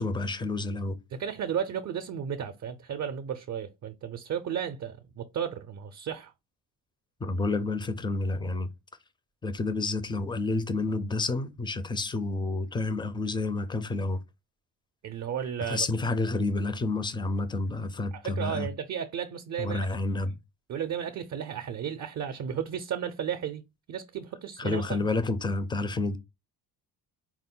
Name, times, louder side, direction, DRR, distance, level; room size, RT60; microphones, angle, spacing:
voice 1, 0.0-1.0 7.2-8.7 9.4-14.2 15.7-18.7 19.6-20.4 24.6-26.2, left 3 dB, 10° left, 0.4 m, -29 dB
voice 2, 1.1-6.3 15.0-15.9 18.1-19.9 20.7-23.6 23.9-25.1, right 8 dB, 45° right, 0.5 m, -34 dB
4.4 x 2.1 x 3.7 m
cardioid pair, 110°, 40 cm